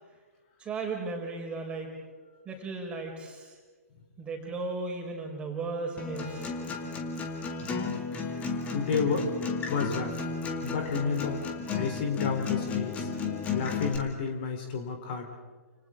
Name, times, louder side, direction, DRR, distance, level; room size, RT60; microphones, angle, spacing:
voice 1, 0.6-1.9 2.4-3.5 4.2-6.5, right 3 dB, 15° right, 1 dB, 4.7 m, -35 dB
Acoustic guitar, 6.0-14.0, left 5 dB, 15° left, 2.3 m, -33 dB
voice 2, 8.7-9.3 9.7-10.2 10.6-11.4 11.8-13.1 13.5-15.3, left 5 dB, 40° left, 4 dB, 3.6 m, -30 dB
29.5 x 28.0 x 3.8 m, 1.4 s
figure-of-eight pair, 120°, 8 cm